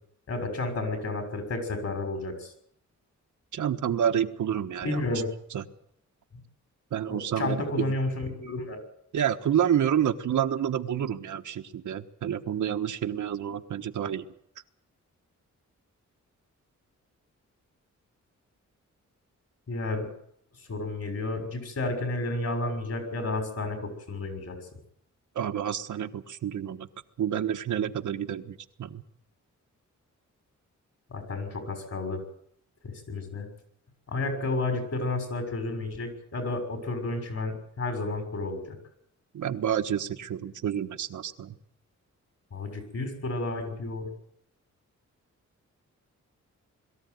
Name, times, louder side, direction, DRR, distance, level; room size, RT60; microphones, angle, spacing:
voice 1, 0.3-2.5 4.8-5.3 7.1-8.8 19.7-20.1 20.7-24.6 31.1-32.2 32.8-33.5 34.1-38.8 42.5-44.1, left 2 dB, 55° left, 6 dB, 6.3 m, -31 dB
voice 2, 3.5-5.0 5.5-5.6 6.9-7.9 9.1-14.3 25.3-26.9 27.2-29.0 39.3-41.5, right 9 dB, 90° right, 6 dB, 1.4 m, -29 dB
22.0 x 14.0 x 9.4 m, 0.71 s
wide cardioid pair, 130°, 30 cm